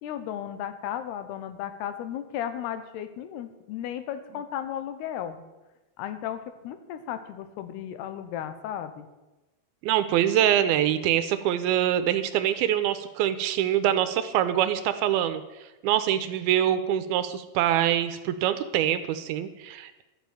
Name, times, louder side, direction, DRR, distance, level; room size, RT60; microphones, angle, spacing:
voice 1, 0.0-5.4 6.0-9.1, left 10 dB, 85° left, 10 dB, 3.0 m, -35 dB
voice 2, 9.8-15.4 15.8-20.0, right 11 dB, 80° right, 11 dB, 2.4 m, -24 dB
12.0 x 7.3 x 9.1 m, 1.1 s
omnidirectional pair, 4.6 m